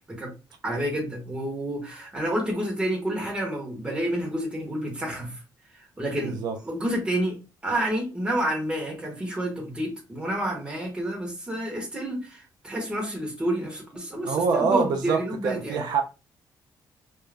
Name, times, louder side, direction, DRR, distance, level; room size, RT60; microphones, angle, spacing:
voice 1, 0.6-5.4 5.8-7.4 7.6-15.8, right 1 dB, 15° right, 1.0 m, -29 dB
voice 2, 6.2-6.6 14.2-16.0, right 5 dB, 75° right, 0.5 m, -25 dB
2.4 x 2.2 x 3.2 m
cardioid pair, 145°, 7 cm